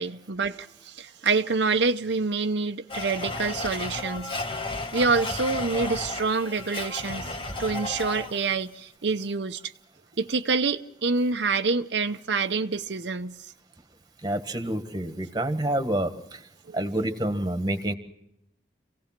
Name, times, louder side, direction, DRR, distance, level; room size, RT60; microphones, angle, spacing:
voice 1, 0.0-4.4 4.9-9.7 10.2-13.5 16.7-16.8, right 4 dB, 75° right, 0.8 m, -27 dB
Domestic sounds home sounds, 2.9-8.6, left 2 dB, 30° left, 1.6 m, -33 dB
voice 2, 14.2-16.1 16.7-17.9, right 1 dB, 20° right, 1.5 m, -27 dB
27.0 x 17.0 x 6.0 m
head